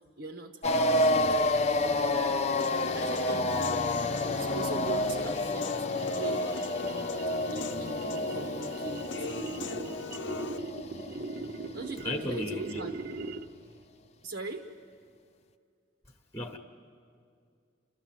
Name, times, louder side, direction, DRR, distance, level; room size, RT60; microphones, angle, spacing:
voice 1, 0.2-2.3 2.9-6.4 7.4-9.1 11.7-12.9 14.2-14.7, right 2 dB, 70° right, 4 dB, 1.0 m, -41 dB
sound 1, 0.6-12.2, left 1 dB, 35° left, 0.6 m, -30 dB
Human voice / Piano, 2.6-10.6, left 4 dB, 70° left, 0.8 m, -40 dB
sound 2, 5.0-13.7, right 3 dB, 50° right, 0.6 m, -41 dB
voice 2, 12.0-12.8 16.3-16.6, left 1 dB, 15° left, 4 dB, 1.0 m, -34 dB
30.0 x 14.0 x 7.5 m, 2.3 s
head